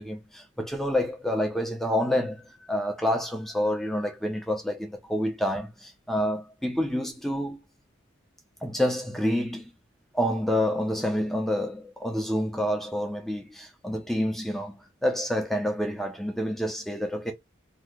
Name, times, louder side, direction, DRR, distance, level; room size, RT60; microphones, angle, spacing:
voice 1, 0.0-7.6 8.6-9.7 10.1-17.3, equal, ahead, 0.5 m, -28 dB
2.8 x 2.2 x 3.5 m
head